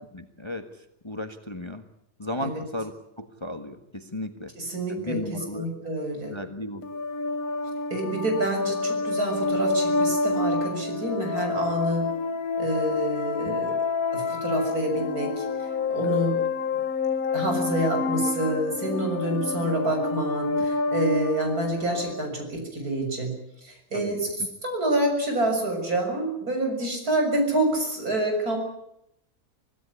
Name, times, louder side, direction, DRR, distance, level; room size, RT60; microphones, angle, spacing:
voice 1, 0.1-1.8 2.2-4.5 4.9-5.7 6.3-6.8 13.4-13.6 16.0-16.3 23.9-24.1, left 1 dB, 20° left, 8 dB, 1.5 m, -35 dB
voice 2, 4.6-5.2 5.5-6.4 7.9-12.1 12.6-13.8 14.1-15.5 15.9-16.4 17.3-23.3 23.6-24.3 24.6-28.6, right 1 dB, 65° right, 4 dB, 7.2 m, -27 dB
sound 1, 6.8-22.3, left 3 dB, 65° left, 1.7 m, -28 dB
25.5 x 17.0 x 9.7 m, 0.80 s
omnidirectional pair, 1.7 m